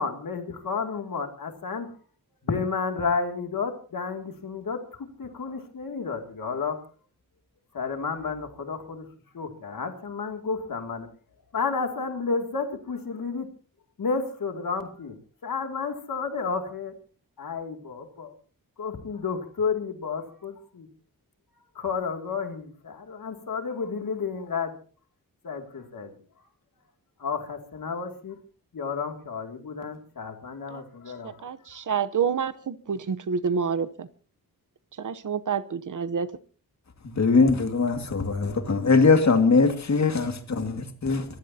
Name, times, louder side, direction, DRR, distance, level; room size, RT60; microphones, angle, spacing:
voice 1, 0.0-1.9 2.4-6.8 7.7-9.1 9.3-11.1 11.5-13.5 14.0-15.2 15.4-16.9 17.4-18.3 18.8-20.9 21.7-24.7 25.4-26.1 27.2-28.4 28.7-31.3, left 5 dB, 65° left, 5 dB, 2.7 m, -31 dB
voice 2, 31.2-34.1 35.0-36.3, right 6 dB, 55° right, 14 dB, 1.0 m, -28 dB
voice 3, 37.2-41.2, left 4 dB, 50° left, 7 dB, 2.2 m, -21 dB
25.5 x 16.0 x 2.9 m, 0.40 s
wide cardioid pair, 170°, 36 cm